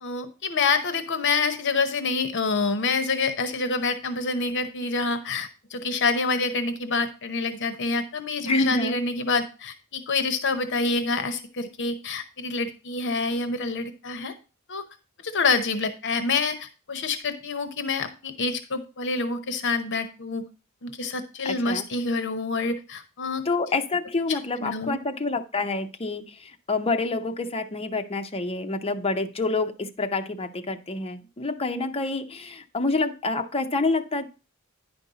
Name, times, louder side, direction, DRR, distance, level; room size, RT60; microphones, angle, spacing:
voice 1, 0.0-14.3 14.7-14.8 15.2-20.4 20.8-23.4 24.3-25.0, left 4 dB, 55° left, 0.9 m, -27 dB
voice 2, 8.4-9.0 21.4-21.8 23.4-34.3, left 3 dB, 25° left, 0.7 m, -27 dB
10.0 x 5.3 x 3.9 m
head